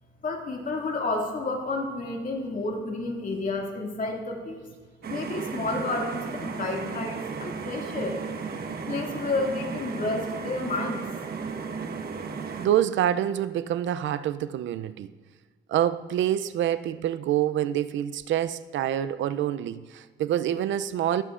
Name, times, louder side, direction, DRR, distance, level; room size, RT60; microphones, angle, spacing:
voice 1, 0.2-4.7 5.1-8.2 8.9-11.0, left 2 dB, 40° left, 2.2 m, -30 dB
sound 1, 5.0-12.7, right 5 dB, 50° right, 1.2 m, -35 dB
voice 2, 12.6-15.1 15.7-21.2, right 11 dB, 70° right, 0.5 m, -26 dB
22.5 x 8.3 x 2.5 m
cardioid pair, 90°, 20 cm